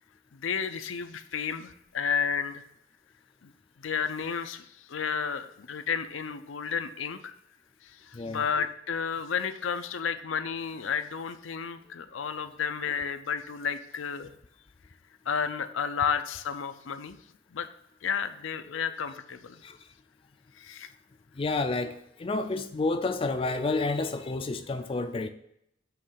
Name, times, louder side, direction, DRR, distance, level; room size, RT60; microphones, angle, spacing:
voice 1, 0.3-2.6 3.4-3.5 3.8-7.4 7.8-14.3 15.3-17.2 17.5-17.7 18.0-19.6 20.6-20.9, left 6 dB, 85° left, 0.6 m, -32 dB
voice 2, 21.4-25.3, left 3 dB, 30° left, 0.4 m, -30 dB
7.8 x 3.2 x 6.3 m
head